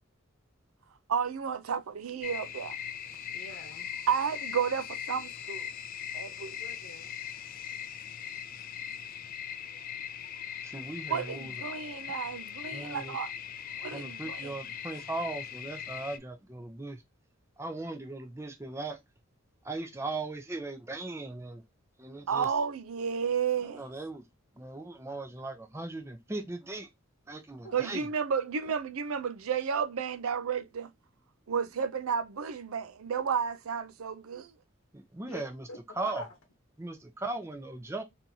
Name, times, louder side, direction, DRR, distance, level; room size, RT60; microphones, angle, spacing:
voice 1, 1.1-2.8 4.1-5.7 6.1-6.6 11.1-13.3 13.8-14.5 22.3-23.8 27.7-30.9 31.5-34.5, right 7 dB, 90° right, 0.5 m, -32 dB
sound 1, 2.2-16.2, left 9 dB, 40° left, 0.3 m, -40 dB
voice 2, 3.3-3.9 6.6-7.1 27.6-27.8 35.3-35.8 36.0-36.3, left 2 dB, 85° left, 0.9 m, -45 dB
voice 3, 10.6-11.6 12.7-13.2 13.9-17.0 17.6-19.0 19.6-21.6 22.0-22.5 23.6-24.2 24.6-26.9 27.3-28.1 34.9-35.7 36.0-36.2 36.8-38.0, right 2 dB, 15° right, 0.6 m, -38 dB
3.6 x 2.8 x 2.7 m
head